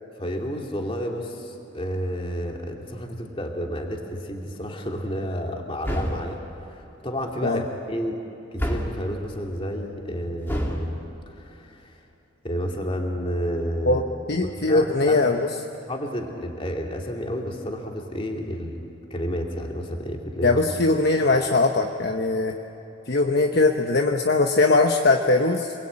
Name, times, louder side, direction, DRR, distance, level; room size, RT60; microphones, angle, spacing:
voice 1, 0.2-6.4 6.7-8.1 8.5-11.0 11.3-11.9 12.4-14.0 14.4-15.5 15.9-18.8 19.1-20.6, equal, 25° left, 1 dB, 2.4 m, -30 dB
sound 1, 5.8-6.4 8.6-9.1 10.5-10.9, equal, 10° left, 2.5 m, -27 dB
voice 2, 14.3-15.5 20.4-22.6 23.1-25.7, left 3 dB, 50° left, 4 dB, 1.0 m, -20 dB
27.5 x 21.5 x 8.8 m, 3.0 s
head